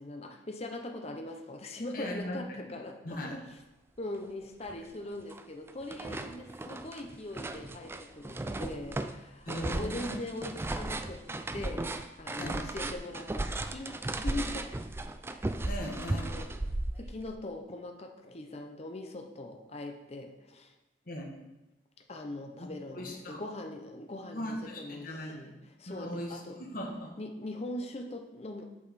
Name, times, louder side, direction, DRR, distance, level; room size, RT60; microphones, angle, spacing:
voice 1, 0.0-3.4 4.0-11.2 11.5-11.9 12.2-14.7 16.1-16.5 17.0-20.7 22.1-26.6 27.2-28.6, left 2 dB, 35° left, 4 dB, 0.8 m, -41 dB
voice 2, 1.9-2.4 3.0-3.4 9.4-10.2 12.4-12.7 15.6-16.3 21.1-21.3 22.6-23.4 24.3-25.3 25.9-27.2, equal, 50° left, 0 dB, 1.4 m, -39 dB
sound 1, 4.2-4.3 4.7-5.4 5.7-17.4, right 2 dB, 15° right, 0.3 m, -36 dB
8.4 x 4.9 x 4.3 m, 0.98 s
head